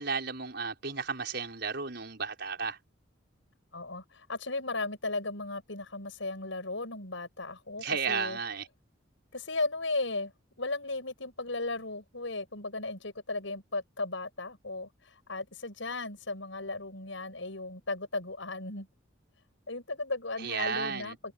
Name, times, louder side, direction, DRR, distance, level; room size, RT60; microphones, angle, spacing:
voice 1, 0.0-2.8 7.8-8.7 20.4-21.2, right 5 dB, 55° right, 6.1 m, -33 dB
voice 2, 3.7-8.4 9.3-10.3 10.6-14.9 15.3-18.9 19.7-21.3, left 2 dB, 70° left, 6.4 m, -36 dB
head